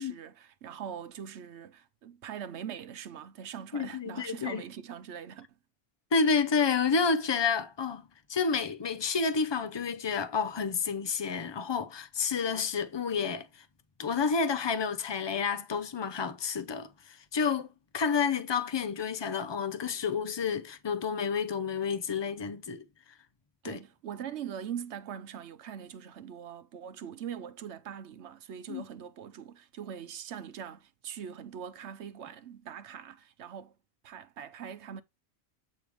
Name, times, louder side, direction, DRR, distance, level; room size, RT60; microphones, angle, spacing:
voice 1, 0.0-5.5 23.6-33.7 34.0-35.0, right 8 dB, 80° right, 1.0 m, -42 dB
voice 2, 3.7-4.6 6.1-8.0 8.3-13.5 14.0-17.7 17.9-22.8 23.6-23.8 28.7-28.8, left 5 dB, 30° left, 0.7 m, -30 dB
8.5 x 3.2 x 5.0 m
omnidirectional pair, 1.2 m